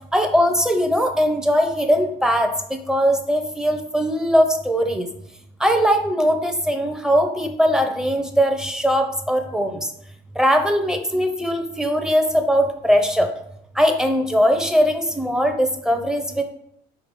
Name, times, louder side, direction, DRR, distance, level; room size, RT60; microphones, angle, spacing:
voice 1, 0.1-2.5 2.9-5.1 5.6-9.9 10.4-13.3 13.8-16.4, equal, 5° right, 5 dB, 0.9 m, -20 dB
4.8 x 4.5 x 5.4 m, 0.73 s
cardioid pair, 110°, 17 cm